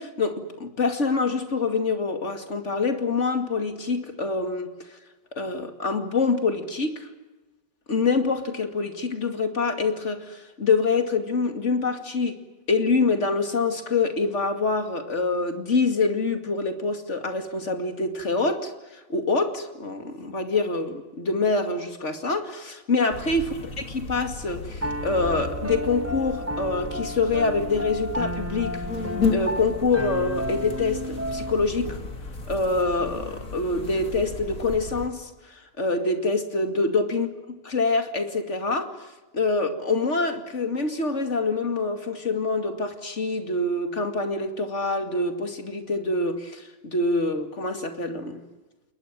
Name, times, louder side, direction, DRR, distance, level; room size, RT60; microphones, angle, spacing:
voice 1, 0.0-4.7 5.3-7.1 7.9-12.4 12.7-18.7 19.1-23.5 23.9-28.8 29.3-32.0 32.5-35.3 35.8-37.3 37.7-48.4, left 3 dB, 55° left, 2.7 m, -25 dB
sound 1, 23.1-35.1, left 4 dB, 75° left, 3.1 m, -34 dB
Piano, 24.8-31.6, right 1 dB, 10° right, 1.0 m, -32 dB
29.5 x 21.0 x 7.5 m
omnidirectional pair, 1.4 m